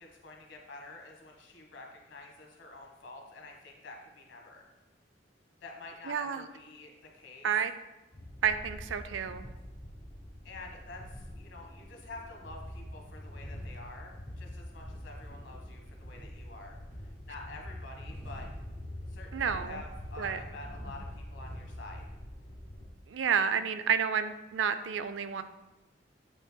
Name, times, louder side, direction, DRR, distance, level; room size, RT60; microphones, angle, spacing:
voice 1, 0.0-4.7 5.6-7.5 10.4-18.5 19.1-22.0, left 2 dB, 85° left, 1 dB, 1.3 m, -48 dB
voice 2, 6.1-6.4 7.4-7.7 8.4-9.4 19.3-19.8 20.2-20.4 23.1-25.4, right 7 dB, 85° right, 10 dB, 0.4 m, -30 dB
sound 1, 8.1-22.9, equal, 35° left, 1.1 m, -44 dB
8.3 x 5.5 x 2.2 m, 1.0 s
head